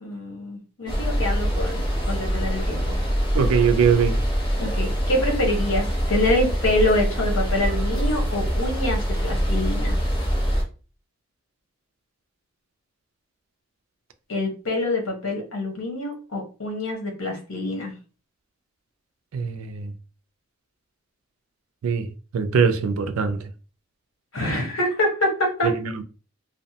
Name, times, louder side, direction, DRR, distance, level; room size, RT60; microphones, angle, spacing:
voice 1, 0.0-2.9 4.6-10.0 14.3-17.9 24.3-25.7, left 1 dB, 85° left, 1.0 m, -26 dB
sound 1, 0.9-10.6, equal, 20° left, 0.8 m, -24 dB
voice 2, 3.3-4.2 19.3-19.9 21.8-22.1 22.3-23.4 25.6-26.0, right 6 dB, 85° right, 0.4 m, -22 dB
2.7 x 2.1 x 2.7 m
head